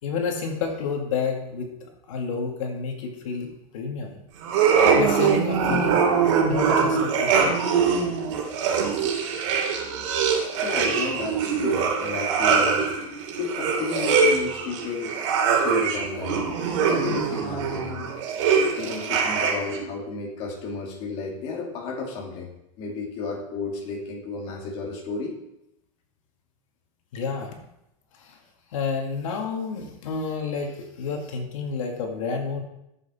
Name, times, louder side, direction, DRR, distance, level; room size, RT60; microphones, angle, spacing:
voice 1, 0.0-1.7 2.1-4.2 4.9-6.0 6.4-7.6 27.1-27.6 28.3-28.4 28.7-30.7 31.0-32.6, left 5 dB, 80° left, 2 dB, 2.1 m, -29 dB
sound 1, 4.4-19.8, right 6 dB, 65° right, 3.2 m, -23 dB
voice 2, 10.6-12.9 13.4-15.1 15.5-16.4 16.9-18.0 18.8-22.5 22.8-25.4, left 4 dB, 35° left, -1 dB, 2.2 m, -32 dB
11.5 x 7.6 x 4.3 m, 0.83 s
supercardioid pair, 170°, 17 cm